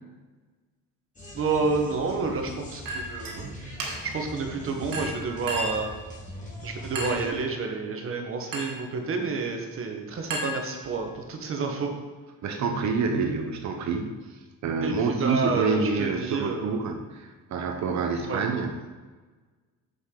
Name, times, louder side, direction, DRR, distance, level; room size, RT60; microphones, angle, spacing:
sound 1, 1.2-7.3, equal, 20° left, 1.7 m, -42 dB
voice 1, 1.3-3.5 4.0-5.9 6.6-11.9 14.8-16.8 18.3-18.4, right 4 dB, 40° right, 3 dB, 1.2 m, -29 dB
Chink clink, 2.9-3.4 3.8-4.2 4.9-5.9 7.0-7.3 8.5-8.9 10.3-11.1, right 1 dB, 80° right, 1.9 m, -34 dB
voice 2, 12.4-14.1 14.6-18.8, right 4 dB, 55° right, 5 dB, 0.8 m, -27 dB
7.2 x 6.9 x 3.8 m, 1.3 s
cardioid pair, 165°, 33 cm